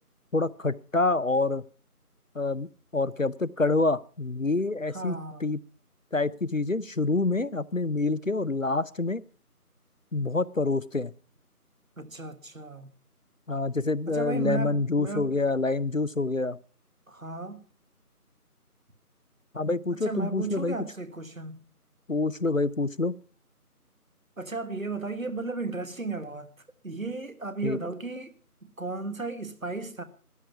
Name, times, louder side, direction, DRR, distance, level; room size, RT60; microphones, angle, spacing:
voice 1, 0.3-1.6 2.3-2.7 2.9-5.6 6.1-9.2 10.1-11.1 13.5-16.6 19.5-20.8 22.1-23.2 27.6-27.8, left 3 dB, 55° left, 0.6 m, -27 dB
voice 2, 4.9-5.5 12.0-12.9 14.1-15.4 17.1-17.7 19.9-21.6 24.4-26.5 26.8-28.3 28.6-30.0, right 3 dB, 60° right, 1.6 m, -35 dB
14.0 x 11.0 x 5.8 m
figure-of-eight pair, 175°, 46 cm